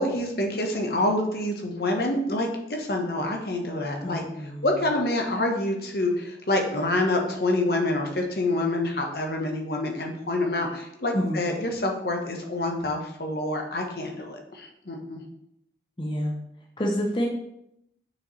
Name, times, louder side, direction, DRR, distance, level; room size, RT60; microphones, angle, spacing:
voice 1, 0.0-4.2 4.6-15.2, left 1 dB, 60° left, 2 dB, 1.0 m, -27 dB
voice 2, 4.0-4.9 11.1-11.4 16.0-16.3 16.8-17.3, equal, 30° left, 0 dB, 0.7 m, -28 dB
6.3 x 5.2 x 3.1 m, 0.79 s
head